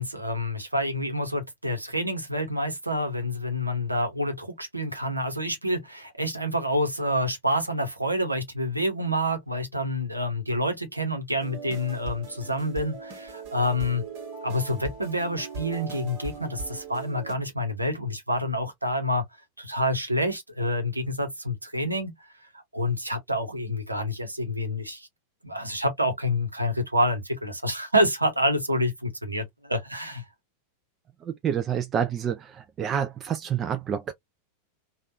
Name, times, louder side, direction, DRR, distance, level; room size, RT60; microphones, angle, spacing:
voice 1, 0.0-14.0 14.4-19.2 19.6-22.1 22.7-25.1 25.4-30.2, equal, 85° right, 1.0 m, -28 dB
sound 1, 11.4-17.3, right 4 dB, 45° right, 1.6 m, -39 dB
voice 2, 31.2-34.1, right 8 dB, 25° right, 0.4 m, -28 dB
3.3 x 2.4 x 2.5 m
figure-of-eight pair, 90°, 0 cm